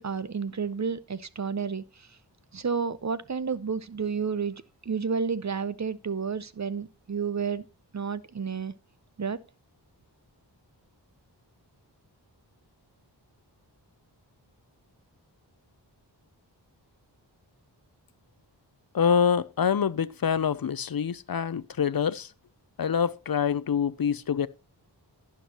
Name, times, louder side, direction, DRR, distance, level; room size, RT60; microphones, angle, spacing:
voice 1, 0.0-1.8 2.5-7.6 7.9-8.7 9.2-9.4, right 5 dB, 40° right, 0.6 m, -31 dB
voice 2, 18.9-22.3 22.8-24.5, left 7 dB, 55° left, 0.6 m, -26 dB
11.5 x 9.9 x 2.9 m
wide cardioid pair, 80°, 43 cm